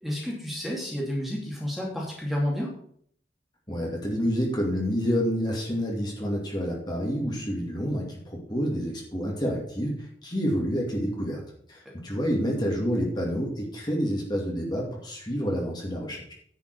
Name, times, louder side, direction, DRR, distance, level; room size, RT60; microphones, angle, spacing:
voice 1, 0.0-2.7, equal, ahead, -3 dB, 2.6 m, -30 dB
voice 2, 3.7-9.9 10.2-11.4 11.7-16.3, equal, 25° left, -2 dB, 2.6 m, -28 dB
10.5 x 5.9 x 6.8 m, 0.63 s
head